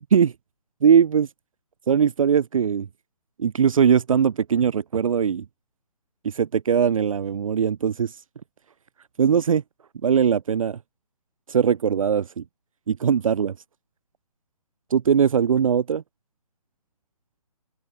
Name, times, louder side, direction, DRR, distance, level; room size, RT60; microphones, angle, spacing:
voice 1, 0.8-1.3 1.9-2.9 3.4-5.4 6.2-8.2 9.2-9.6 10.0-10.8 11.5-12.4 12.9-13.5 14.9-16.0, right 7 dB, 55° right, 1.2 m, -20 dB
figure-of-eight pair, 140°, 21 cm